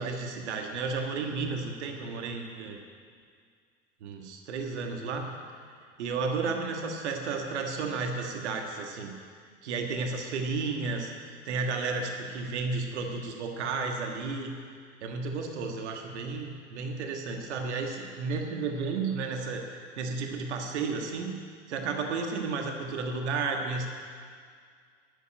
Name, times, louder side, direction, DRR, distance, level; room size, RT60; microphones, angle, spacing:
voice 1, 0.0-2.8 4.0-5.4 6.0-9.1 9.6-14.6 15.0-21.3 21.7-23.9, right 4 dB, 65° right, 3 dB, 1.6 m, -32 dB
11.5 x 9.2 x 8.9 m, 2.1 s
figure-of-eight pair, 75°, 37 cm